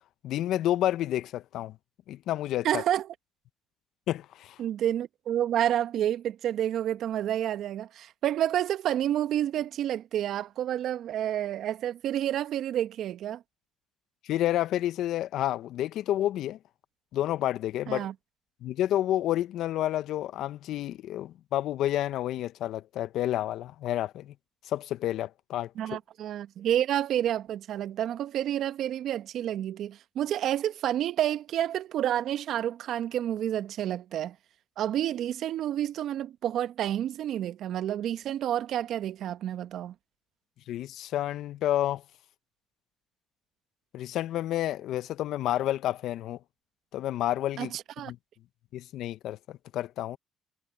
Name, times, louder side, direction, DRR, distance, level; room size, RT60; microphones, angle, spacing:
voice 1, 0.2-1.7 2.1-2.8 4.1-4.6 14.2-16.6 17.1-18.1 18.6-24.3 24.6-26.0 40.7-42.0 43.9-46.4 46.9-47.7 48.1-48.2 48.7-50.2, left 13 dB, 70° left, 1.1 m, -30 dB
voice 2, 2.6-3.1 4.6-13.4 17.9-18.1 25.7-34.3 34.8-39.9 47.6-48.1, right 11 dB, 70° right, 1.5 m, -29 dB
hypercardioid pair, 55°, 0 cm